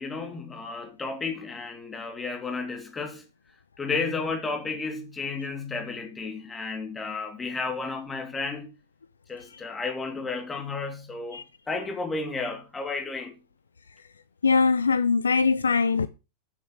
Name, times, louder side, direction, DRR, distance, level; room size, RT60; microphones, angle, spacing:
voice 1, 0.0-3.2 3.8-8.7 9.3-13.4, left 4 dB, 15° left, 2.8 m, -32 dB
voice 2, 14.4-16.1, left 5 dB, 75° left, 0.5 m, -22 dB
9.9 x 6.3 x 6.2 m
figure-of-eight pair, 90°, 0 cm